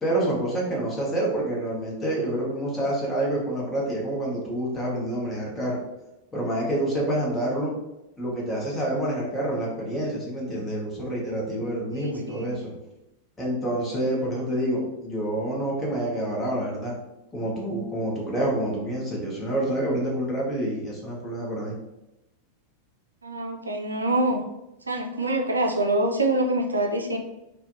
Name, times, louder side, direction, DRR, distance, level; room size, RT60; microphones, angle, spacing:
voice 1, 0.0-5.8 6.3-7.7 8.2-12.7 13.4-16.9 17.3-21.8, right 1 dB, 15° left, -5 dB, 0.9 m, -27 dB
voice 2, 11.9-12.5 23.2-24.4 24.9-27.2, right 1 dB, 80° right, 2 dB, 0.3 m, -25 dB
2.5 x 2.1 x 2.5 m, 0.93 s
figure-of-eight pair, 90°, 0 cm